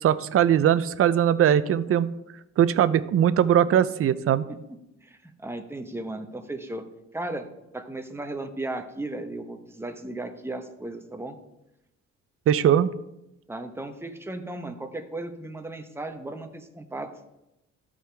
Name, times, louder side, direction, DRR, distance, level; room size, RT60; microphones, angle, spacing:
voice 1, 0.0-2.1 2.6-4.4 12.5-12.9, right 10 dB, 50° right, 15 dB, 0.5 m, -20 dB
voice 2, 5.0-6.8 7.1-11.4 13.5-17.1, right 2 dB, 10° right, 6 dB, 0.9 m, -35 dB
13.5 x 5.0 x 3.4 m, 0.90 s
cardioid pair, 90°, 30 cm